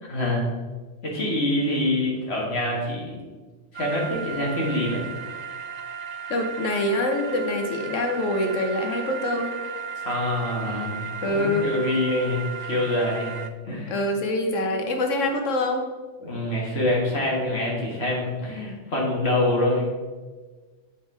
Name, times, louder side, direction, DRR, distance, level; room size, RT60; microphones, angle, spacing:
voice 1, 0.1-0.5 1.0-3.2 3.7-5.1 10.0-13.4 13.7-14.0 16.2-19.9, left 1 dB, 55° left, -3 dB, 1.9 m, -25 dB
sound 1, 3.7-13.5, right 6 dB, 65° right, 0.4 m, -35 dB
voice 2, 6.3-9.5 11.2-11.7 13.9-15.8, left 1 dB, 85° left, 4 dB, 1.3 m, -25 dB
7.2 x 5.5 x 3.7 m, 1.4 s
omnidirectional pair, 1.3 m